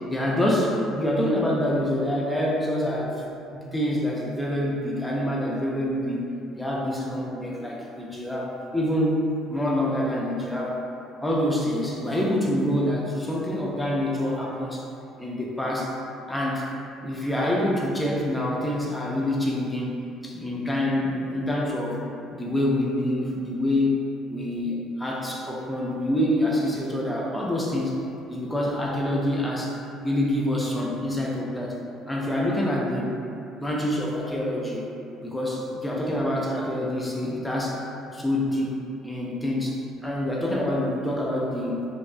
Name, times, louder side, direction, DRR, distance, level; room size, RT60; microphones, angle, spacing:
voice 1, 0.1-3.2 3.5-6.3 6.6-10.8 11.2-14.8 15.2-16.0 16.3-16.7 17.0-22.0 22.3-24.0 24.3-28.0 28.3-29.8 30.0-31.8 32.1-33.2 33.6-34.9 35.2-37.8 38.1-38.8 39.0-41.8, left 1 dB, 10° left, -4 dB, 0.4 m, -26 dB
2.4 x 2.1 x 2.4 m, 2.6 s
hypercardioid pair, 60°, 0 cm